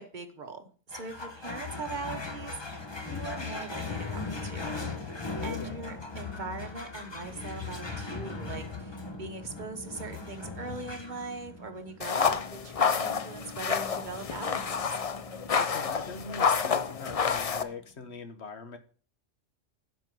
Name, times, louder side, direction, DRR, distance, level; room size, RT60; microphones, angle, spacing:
voice 1, 0.0-2.6 3.1-4.8 5.4-14.9, right 3 dB, 40° right, 6 dB, 1.3 m, -41 dB
sound 1, 0.9-17.6, left 3 dB, 20° left, 1.2 m, -40 dB
voice 2, 5.3-5.8 15.5-18.8, left 4 dB, 60° left, 9 dB, 1.4 m, -42 dB
sound 2, 12.0-17.6, left 6 dB, 40° left, 0.5 m, -29 dB
10.0 x 5.1 x 7.6 m, 0.42 s
omnidirectional pair, 1.3 m